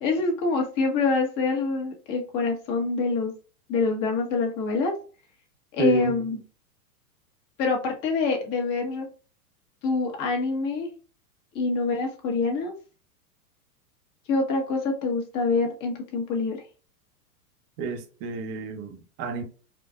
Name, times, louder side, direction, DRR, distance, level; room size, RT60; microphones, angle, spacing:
voice 1, 0.0-3.3 3.7-4.9 5.7-6.4 7.6-9.1 9.8-10.9 11.5-12.7 14.3-16.6, left 4 dB, 40° left, 1.4 m, -25 dB
voice 2, 5.8-6.2 17.8-19.4, right 4 dB, 40° right, 0.9 m, -29 dB
4.3 x 2.5 x 2.3 m
hypercardioid pair, 115°, 47 cm